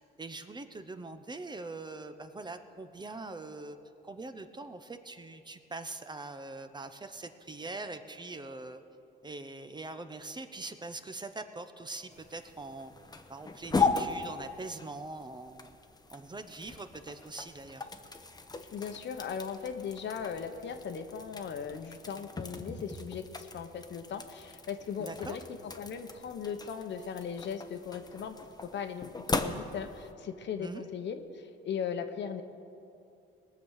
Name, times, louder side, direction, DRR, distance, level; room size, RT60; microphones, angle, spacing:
voice 1, 0.0-3.8 4.0-8.8 9.2-12.9 13.3-15.7 16.1-17.9 25.0-25.4 30.6-30.9, right 3 dB, 20° right, 9 dB, 0.8 m, -43 dB
sound 1, 12.1-30.1, left 4 dB, 20° left, 0.9 m, -38 dB
voice 2, 18.7-28.4 28.6-32.4, left 7 dB, 65° left, 7 dB, 1.1 m, -38 dB
20.0 x 7.2 x 6.5 m, 2.7 s
cardioid pair, 90°, 20 cm